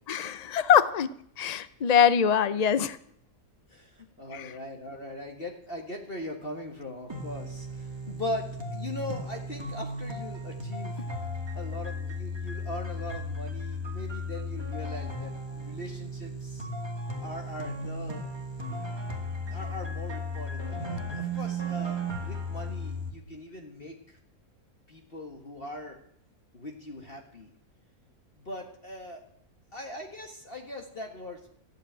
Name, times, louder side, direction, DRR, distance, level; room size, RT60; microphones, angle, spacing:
voice 1, 0.1-3.0 4.3-4.5, left 8 dB, 70° left, 15 dB, 0.4 m, -23 dB
voice 2, 3.7-11.0 11.5-16.7 17.2-18.3 19.5-24.2 24.9-26.0 26.5-27.5 28.3-29.3 29.7-31.5, left 1 dB, 40° left, 2 dB, 1.9 m, -40 dB
sound 1, 7.1-23.1, equal, 15° right, 2.2 m, -35 dB
14.5 x 8.7 x 8.8 m, 0.64 s
omnidirectional pair, 1.6 m